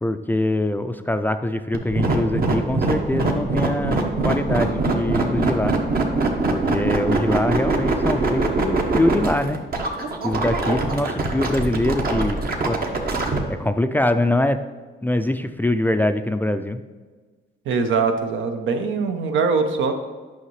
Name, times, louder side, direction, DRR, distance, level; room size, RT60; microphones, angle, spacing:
voice 1, 0.0-5.8 6.5-9.6 10.2-12.4 12.6-12.8 13.5-14.6 15.0-16.8, left 1 dB, 10° left, 9 dB, 0.3 m, -23 dB
sound 1, 1.7-13.4, right 3 dB, 50° right, 1.1 m, -22 dB
voice 2, 17.7-19.9, right 4 dB, 75° right, 7 dB, 0.8 m, -22 dB
8.5 x 5.7 x 3.1 m, 1.4 s
cardioid pair, 90°, 20 cm